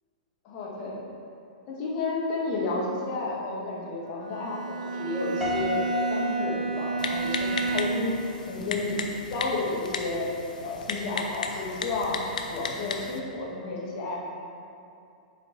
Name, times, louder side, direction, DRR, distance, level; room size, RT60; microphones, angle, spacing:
voice 1, 0.4-1.0 1.7-10.3 10.6-12.2 12.5-14.2, left 2 dB, 45° left, -4 dB, 1.6 m, -31 dB
Bowed string instrument, 4.2-8.3, right 4 dB, 75° right, 0.5 m, -30 dB
Piano, 5.4-7.6, left 4 dB, ahead, 1.5 m, -33 dB
Typing, 7.0-13.2, left 4 dB, 75° left, 0.6 m, -35 dB
7.3 x 4.5 x 3.9 m, 2.6 s
hypercardioid pair, 110°, 4 cm